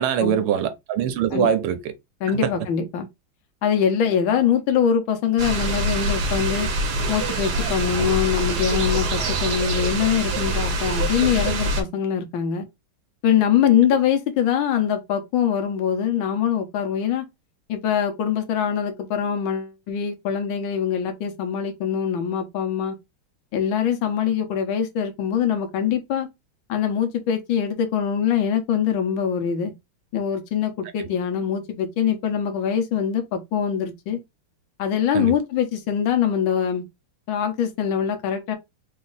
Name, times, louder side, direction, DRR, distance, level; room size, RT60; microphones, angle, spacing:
voice 1, 0.0-1.9 2.3-2.5 8.0-8.1 35.1-35.3, right 9 dB, 90° right, 1.7 m, -23 dB
voice 2, 2.2-3.1 3.6-6.7 7.1-12.7 13.2-17.2 17.7-23.0 23.5-26.3 26.7-29.7 30.1-34.2 34.8-36.8 37.3-38.6, left 8 dB, 70° left, 1.7 m, -23 dB
sound 1, 5.4-11.8, right 1 dB, 55° right, 1.5 m, -24 dB
4.1 x 2.7 x 3.9 m
omnidirectional pair, 2.3 m